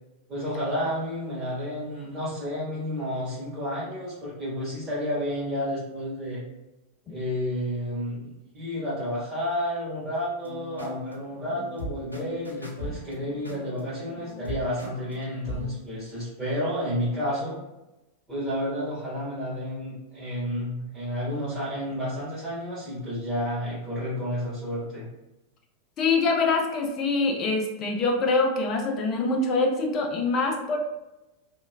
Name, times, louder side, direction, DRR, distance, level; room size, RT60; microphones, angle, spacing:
voice 1, 0.3-6.4 7.0-17.6 18.3-25.1, equal, 15° right, -14 dB, 1.4 m, -31 dB
sound 1, 10.4-15.7, left 1 dB, 85° left, 0.4 m, -39 dB
voice 2, 26.0-30.8, left 3 dB, 30° left, 2 dB, 0.5 m, -24 dB
3.0 x 2.1 x 2.2 m, 0.98 s
figure-of-eight pair, 90°, 0 cm